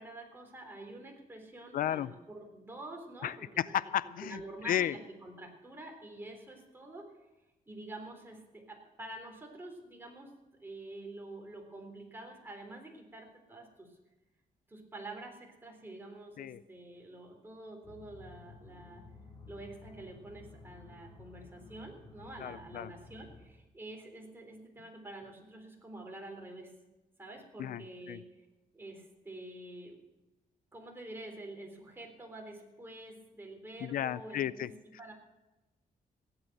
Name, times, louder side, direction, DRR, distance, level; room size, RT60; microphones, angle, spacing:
voice 1, 0.0-3.8 4.0-7.1 7.7-10.3 10.6-13.9 14.7-19.0 19.5-26.7 27.2-28.2 28.7-30.0 30.7-35.1, right 2 dB, 15° right, 1 dB, 3.6 m, -47 dB
voice 2, 1.7-2.1 3.2-4.4 4.6-4.9 16.4-16.6 22.4-22.9 27.6-27.8 28.1-28.2 33.8-34.7, left 11 dB, 75° left, 18 dB, 0.5 m, -33 dB
sound 1, 17.8-23.5, left 3 dB, 20° left, 4.5 m, -53 dB
17.0 x 9.0 x 6.6 m, 1.0 s
cardioid pair, 110°, 15 cm